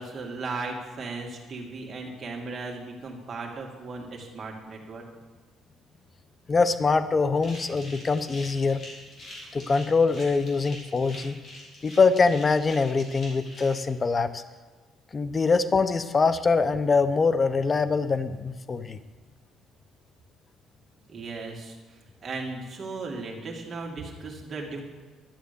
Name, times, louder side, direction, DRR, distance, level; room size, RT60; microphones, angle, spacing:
voice 1, 0.0-5.0 21.1-21.8 22.2-24.8, right 3 dB, 35° right, -1 dB, 2.2 m, -36 dB
voice 2, 6.5-8.8 9.5-11.4 11.8-14.4 15.1-19.0, left 4 dB, 25° left, 12 dB, 0.6 m, -23 dB
sound 1, 7.4-13.7, left 1 dB, 45° left, 4.2 m, -45 dB
11.5 x 7.4 x 6.9 m, 1.3 s
cardioid pair, 140°, 0 cm